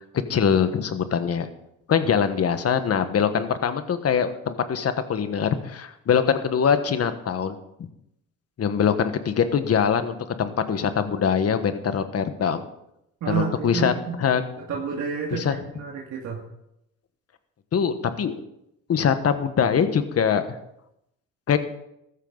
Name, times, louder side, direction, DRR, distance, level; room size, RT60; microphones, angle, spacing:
voice 1, 0.3-1.5 1.9-7.6 8.6-12.6 13.3-13.9 14.2-14.4 15.3-15.6 17.7-18.4 18.9-20.6 21.5-21.6, left 7 dB, 55° left, 9 dB, 1.4 m, -23 dB
voice 2, 13.2-13.9 14.7-16.4, right 6 dB, 70° right, -2 dB, 2.3 m, -29 dB
15.0 x 13.0 x 4.0 m, 0.82 s
cardioid pair, 90°, 30 cm